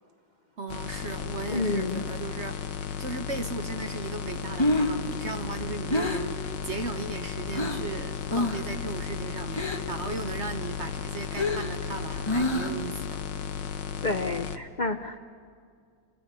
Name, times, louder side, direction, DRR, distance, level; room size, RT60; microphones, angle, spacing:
voice 1, 0.6-2.6 3.0-13.2, right 4 dB, 50° right, 8 dB, 0.9 m, -36 dB
sound 1, 0.7-14.6, left 7 dB, 70° left, 1.6 m, -35 dB
voice 2, 1.5-2.0 14.0-15.2, left 2 dB, 50° left, 8 dB, 0.5 m, -29 dB
Breathing, 4.3-7.9 8.3-8.7 9.0-10.0 10.4-12.9, left 1 dB, 15° left, 1.3 m, -29 dB
28.5 x 19.5 x 10.0 m, 2.2 s
omnidirectional pair, 2.1 m